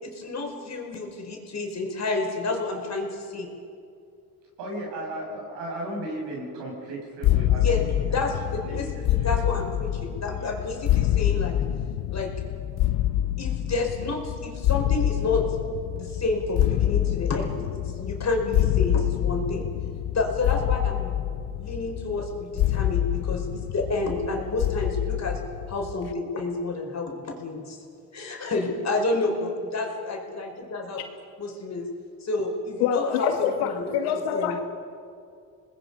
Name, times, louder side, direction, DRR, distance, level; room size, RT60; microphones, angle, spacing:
voice 1, 0.0-3.5 7.6-11.6 12.1-12.3 13.4-15.4 15.9-19.7 20.1-21.1 21.6-23.5 23.7-25.4 25.7-27.8 28.1-30.4 30.7-31.0 31.4-31.9 32.2-33.9 34.3-34.6, left 3 dB, 40° left, 2 dB, 5.0 m, -29 dB
voice 2, 4.6-9.5 10.3-10.6, right 1 dB, 75° right, -1 dB, 7.6 m, -36 dB
sound 1, 7.2-26.1, left 13 dB, 60° left, 1.0 m, -26 dB
voice 3, 32.8-34.6, left 9 dB, 85° left, 6 dB, 1.9 m, -26 dB
27.0 x 20.0 x 5.6 m, 2.3 s
supercardioid pair, 65°, 42 cm